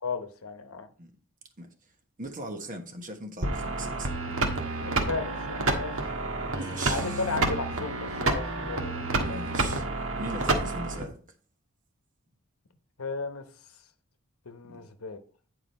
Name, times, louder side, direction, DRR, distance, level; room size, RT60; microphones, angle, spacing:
voice 1, 0.0-0.9 4.8-6.2 6.9-9.0 9.3-9.4 13.0-13.4 14.5-15.2, left 4 dB, 70° left, 1.0 m, -35 dB
voice 2, 2.2-4.1 6.6-7.2 9.2-9.9 10.2-11.2 14.7-14.9, right 2 dB, 40° right, 1.2 m, -39 dB
sound 1, 3.4-11.0, right 2 dB, 65° right, 1.5 m, -29 dB
9.7 x 4.9 x 4.2 m
head